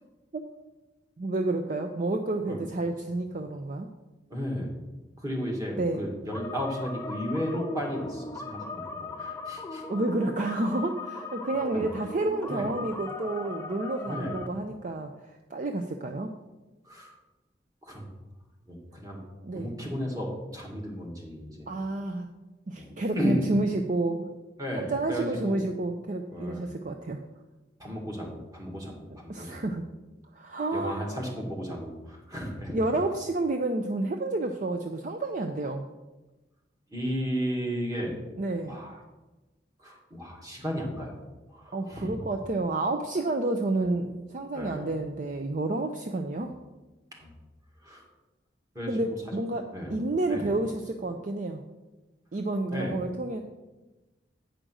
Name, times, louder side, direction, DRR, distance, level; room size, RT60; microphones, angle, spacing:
voice 1, 1.2-3.9 5.8-6.0 9.9-15.1 15.5-16.3 19.4-19.7 21.7-22.3 22.7-24.3 24.7-27.2 29.3-29.9 30.3-31.0 32.7-35.8 38.4-38.7 41.7-46.5 48.9-51.6 52.3-53.4, right 2 dB, 45° right, 5 dB, 0.5 m, -30 dB
voice 2, 4.3-4.7 5.2-9.8 11.7-11.9 12.5-12.7 14.1-14.4 16.8-17.1 17.8-18.1 18.7-19.2 19.5-20.3 20.5-21.7 22.8-23.5 24.6-25.6 26.3-26.7 27.8-28.9 29.2-29.7 30.7-32.7 36.9-38.2 38.7-39.0 39.8-41.2 41.5-42.2 44.5-44.9 47.2-47.3 47.8-48.0 48.8-49.0 49.7-50.0 50.3-50.5 52.7-53.0, equal, 20° right, -1 dB, 1.9 m, -34 dB
sound 1, 6.3-14.5, left 3 dB, 15° left, 0.6 m, -39 dB
9.0 x 5.1 x 6.2 m, 1.1 s
head